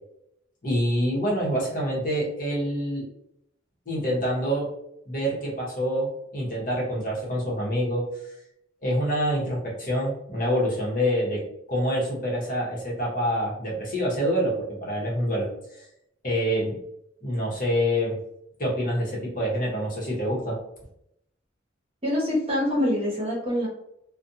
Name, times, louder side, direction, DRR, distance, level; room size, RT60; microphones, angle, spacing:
voice 1, 0.6-3.1 3.9-4.7 5.1-8.3 8.8-11.4 11.7-15.5 16.2-16.8 17.2-18.2 18.6-20.6, equal, 45° left, -4 dB, 0.9 m, -26 dB
voice 2, 22.0-23.7, left 1 dB, 35° right, -5 dB, 1.0 m, -25 dB
2.5 x 2.2 x 2.6 m, 0.78 s
head